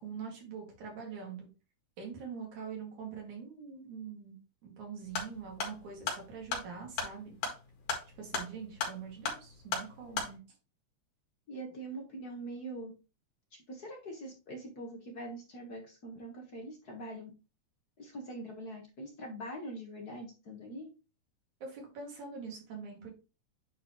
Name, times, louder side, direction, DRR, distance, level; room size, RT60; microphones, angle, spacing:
voice 1, 0.0-1.5 2.0-4.4 4.6-7.3 8.2-10.4 21.6-23.1, right 6 dB, 75° right, 0 dB, 3.6 m, -44 dB
sound 1, 5.0-10.3, left 5 dB, 85° left, 3.3 m, -37 dB
voice 2, 11.5-12.9 13.7-17.3 18.0-20.9, right 1 dB, 45° left, 2 dB, 1.3 m, -43 dB
9.2 x 4.4 x 3.0 m, 0.31 s
omnidirectional pair, 3.4 m